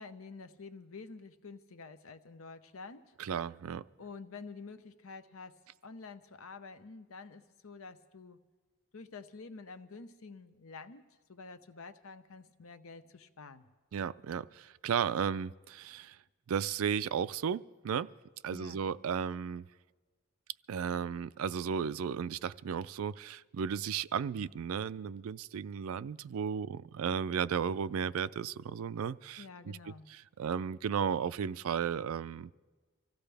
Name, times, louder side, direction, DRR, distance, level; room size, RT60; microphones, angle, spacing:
voice 1, 0.0-3.1 4.0-5.5 5.8-8.4 8.9-11.0 11.3-13.7 18.5-18.8 29.4-30.1, left 4 dB, 70° left, 10 dB, 0.8 m, -49 dB
voice 2, 3.2-3.8 13.9-16.2 16.5-18.1 18.4-19.7 20.7-32.5, right 7 dB, 75° right, 17 dB, 0.4 m, -34 dB
25.0 x 15.5 x 3.4 m, 1.3 s
head